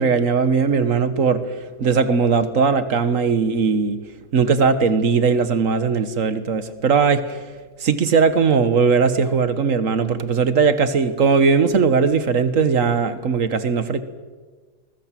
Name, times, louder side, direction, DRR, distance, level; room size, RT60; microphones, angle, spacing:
voice 1, 0.0-1.4 1.8-4.0 4.3-7.2 7.8-14.0, right 5 dB, 45° right, 12 dB, 1.3 m, -19 dB
22.0 x 20.0 x 7.6 m, 1.4 s
omnidirectional pair, 2.4 m